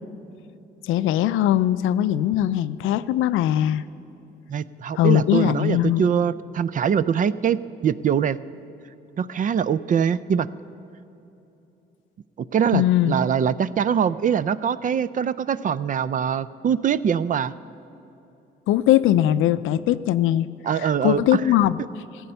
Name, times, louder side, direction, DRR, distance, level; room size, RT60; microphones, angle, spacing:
voice 1, 0.8-3.8 4.9-6.0 12.7-13.2 18.7-20.5 20.8-21.8, left 12 dB, 85° left, 15 dB, 0.4 m, -20 dB
voice 2, 4.5-8.4 9.2-10.5 12.5-17.5 20.6-21.4, right 8 dB, 40° right, 17 dB, 0.4 m, -23 dB
15.0 x 8.7 x 6.8 m, 3.0 s
cardioid pair, 90°, 20 cm